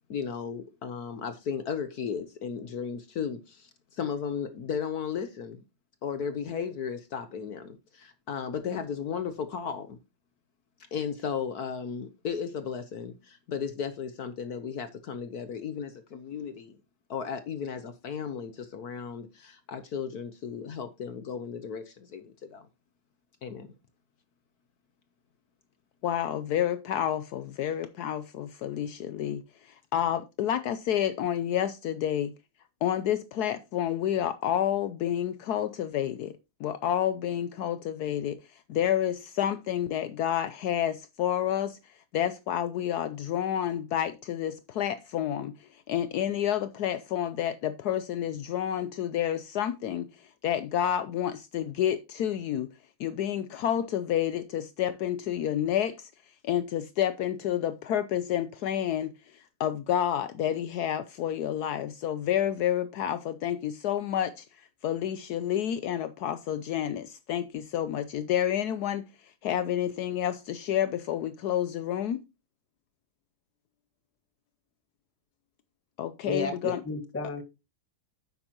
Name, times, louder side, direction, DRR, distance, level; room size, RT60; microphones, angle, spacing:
voice 1, 0.1-5.6 6.0-10.0 10.9-16.8 17.1-22.7 23.4-23.7, left 7 dB, 60° left, 1.2 m, -35 dB
voice 2, 26.0-32.3 32.8-52.7 53.0-56.1 56.4-72.2 76.0-76.8, left 10 dB, 85° left, 0.8 m, -29 dB
voice 3, 76.2-77.4, left 3 dB, 10° left, 1.0 m, -32 dB
9.7 x 8.1 x 2.9 m
omnidirectional pair, 2.3 m